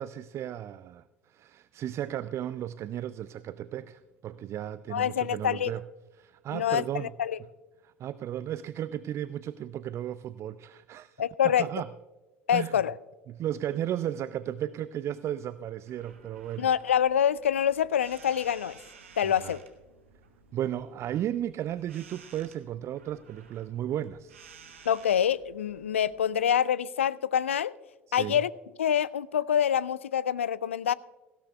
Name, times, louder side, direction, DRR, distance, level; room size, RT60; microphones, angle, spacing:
voice 1, 0.0-5.8 6.2-7.1 7.8-11.9 12.5-12.8 13.3-16.7 19.2-19.6 20.5-24.4 28.1-28.4, right 11 dB, 40° right, 16 dB, 0.4 m, -35 dB
voice 2, 4.9-5.7 6.5-7.4 11.2-11.7 12.5-13.0 16.6-18.8 19.2-19.6 24.9-27.7 28.1-28.5 28.8-30.9, left 9 dB, 80° left, 20 dB, 0.4 m, -26 dB
sound 1, 15.8-26.3, right 5 dB, 80° right, 1.4 m, -55 dB
18.0 x 16.5 x 2.3 m, 1.2 s
figure-of-eight pair, 65°, 7 cm